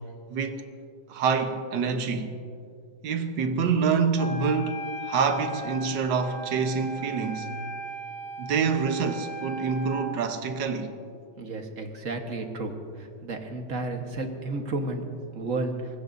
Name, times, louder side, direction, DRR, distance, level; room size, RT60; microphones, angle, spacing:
voice 1, 0.3-0.6 1.1-2.4 3.0-7.5 8.4-10.9, right 5 dB, 60° right, 1.6 m, -26 dB
Wind instrument woodwind instrument, 4.2-10.1, right 1 dB, 85° left, 4.9 m, -38 dB
voice 2, 11.4-12.7 13.2-15.1 15.3-15.7, right 2 dB, 40° right, 1.6 m, -32 dB
24.5 x 20.5 x 2.7 m
omnidirectional pair, 2.3 m